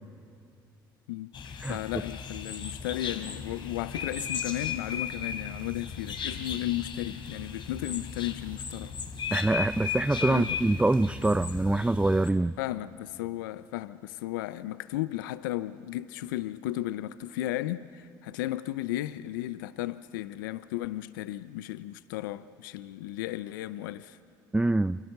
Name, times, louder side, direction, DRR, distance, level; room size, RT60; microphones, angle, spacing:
sound 1, 1.3-12.3, left 6 dB, 50° left, 3.5 m, -36 dB
voice 1, 1.7-8.9 10.3-10.6 12.6-24.2, left 15 dB, 85° left, 0.7 m, -34 dB
voice 2, 9.3-12.5 24.5-25.0, right 2 dB, 10° right, 0.6 m, -25 dB
29.0 x 27.5 x 6.7 m
hypercardioid pair, 60°, 11 cm